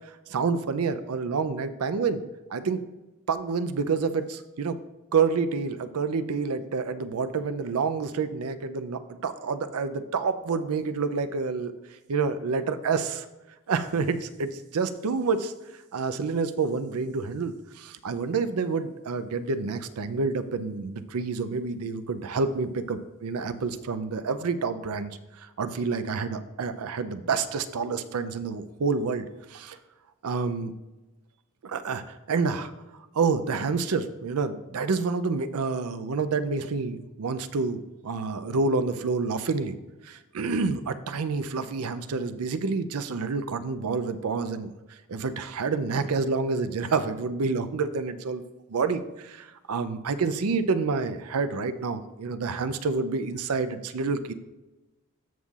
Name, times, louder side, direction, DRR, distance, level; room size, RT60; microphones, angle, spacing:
voice 1, 0.3-2.2 2.5-2.8 3.3-4.8 5.1-11.7 12.1-13.3 13.7-15.5 15.9-29.2 29.5-29.8 30.2-30.7 31.6-32.7 33.1-39.8 40.0-44.7 45.1-48.4 48.7-54.3, right 4 dB, 85° right, 11 dB, 0.5 m, -28 dB
13.5 x 5.5 x 2.4 m, 1.1 s
head